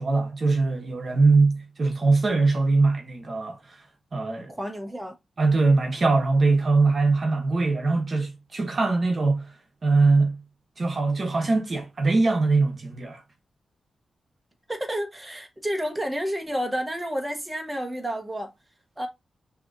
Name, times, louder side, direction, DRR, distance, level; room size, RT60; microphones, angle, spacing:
voice 1, 0.0-3.8 4.1-4.5 5.4-9.5 9.8-10.4 10.8-13.2, right 3 dB, 40° right, 1.1 m, -22 dB
voice 2, 4.5-5.1 14.7-18.5 19.0-19.1, equal, 10° right, 1.0 m, -30 dB
5.9 x 2.9 x 2.5 m
wide cardioid pair, 120°, 0 cm